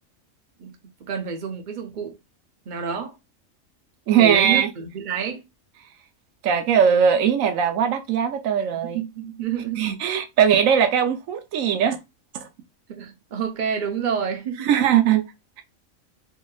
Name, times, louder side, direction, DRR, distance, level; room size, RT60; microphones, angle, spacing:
voice 1, 1.0-2.2 2.7-3.2 4.2-5.4 8.9-9.9 12.9-14.9, right 7 dB, 40° right, 0.9 m, -28 dB
voice 2, 4.1-4.7 6.4-9.0 9.8-12.0 12.3-12.5 14.7-15.3, right 8 dB, 90° right, 1.1 m, -20 dB
4.1 x 2.9 x 2.3 m
omnidirectional pair, 1.4 m